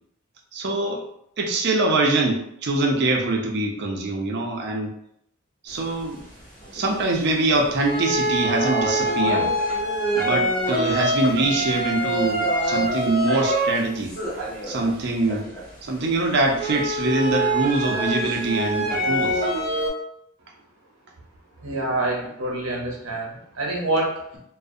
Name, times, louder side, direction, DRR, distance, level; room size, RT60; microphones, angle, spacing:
voice 1, 0.5-1.0 1.4-4.9 5.6-6.2 6.7-9.5 10.1-14.1 14.7-15.5 15.8-19.4, right 2 dB, 50° right, 2 dB, 0.4 m, -23 dB
sound 1, 6.0-6.1 6.6-7.3 7.8-13.8 14.1-15.6 16.1-19.9, right 1 dB, 40° left, 0.8 m, -25 dB
voice 2, 21.6-24.4, right 2 dB, 85° right, -2 dB, 0.7 m, -26 dB
2.4 x 2.0 x 2.5 m, 0.74 s
head